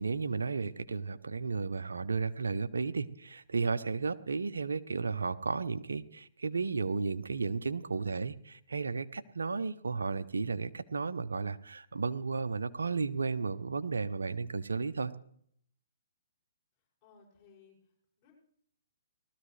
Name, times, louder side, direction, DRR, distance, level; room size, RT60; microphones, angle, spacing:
voice 1, 0.0-15.1, right 4 dB, 85° right, 12 dB, 0.8 m, -33 dB
voice 2, 16.7-18.3, left 5 dB, 25° left, -6 dB, 6.8 m, -62 dB
19.5 x 13.5 x 3.3 m, 0.66 s
hypercardioid pair, 135°, 0 cm